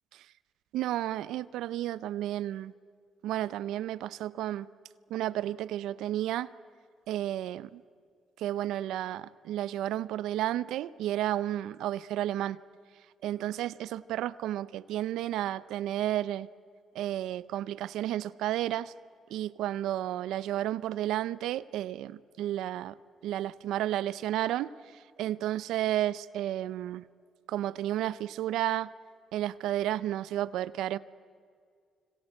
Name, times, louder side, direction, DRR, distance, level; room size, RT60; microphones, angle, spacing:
voice 1, 0.7-2.7 3.2-4.7 5.1-6.5 7.1-7.8 8.4-12.6 13.2-16.5 16.9-18.9 19.3-23.0 23.2-27.0 27.5-28.9 29.3-31.0, right 13 dB, 85° right, 0.6 m, -32 dB
25.5 x 25.5 x 7.9 m
cardioid pair, 90°, 0 cm